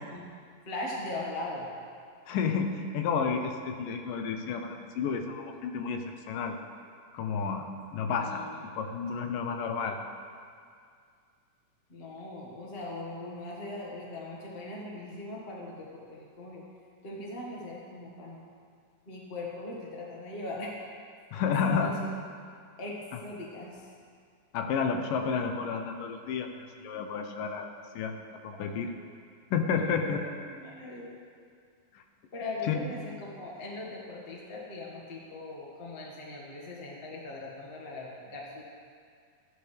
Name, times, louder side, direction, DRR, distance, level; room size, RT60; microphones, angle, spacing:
voice 1, 0.6-1.7 8.1-8.6 11.9-16.6 17.0-18.4 19.0-20.7 21.6-21.9 22.8-23.9 28.5-28.8 29.7-31.2 32.3-38.6, left 2 dB, 30° left, -3 dB, 1.0 m, -40 dB
voice 2, 2.3-6.6 7.1-7.7 7.9-8.5 8.8-10.0 21.3-21.9 24.5-26.5 26.8-28.2 28.4-28.9 29.5-30.2 32.7-32.8, left 6 dB, 85° left, 5 dB, 2.5 m, -31 dB
14.0 x 10.5 x 3.4 m, 2.2 s
omnidirectional pair, 3.8 m